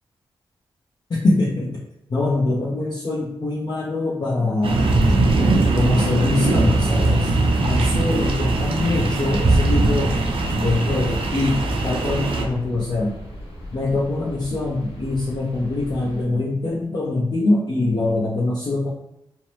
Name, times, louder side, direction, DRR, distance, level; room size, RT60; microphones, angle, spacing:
voice 1, 1.1-1.7 2.1-4.8 5.7-7.3 7.6-10.1 10.6-13.1 13.7-18.9, left 2 dB, 50° left, -5 dB, 0.6 m, -23 dB
sound 1, 4.6-12.4, right 2 dB, 70° right, 0.5 m, -20 dB
sound 2, 7.9-16.2, equal, 85° left, 0.9 m, -37 dB
2.7 x 2.0 x 3.0 m, 0.85 s
cardioid pair, 55°, 10 cm